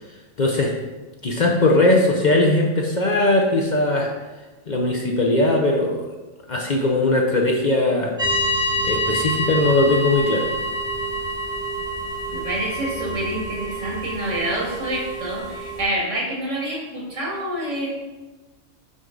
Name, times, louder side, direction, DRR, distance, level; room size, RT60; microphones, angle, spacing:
voice 1, 0.4-0.7 1.2-4.1 4.7-6.1 6.5-8.1 8.8-10.5, left 2 dB, 45° left, 0 dB, 0.7 m, -19 dB
sound 1, 8.2-15.8, equal, 5° right, 1.9 m, -27 dB
voice 2, 12.3-17.9, right 1 dB, 75° right, -3 dB, 1.9 m, -27 dB
6.3 x 5.3 x 3.8 m, 1.2 s
omnidirectional pair, 1.3 m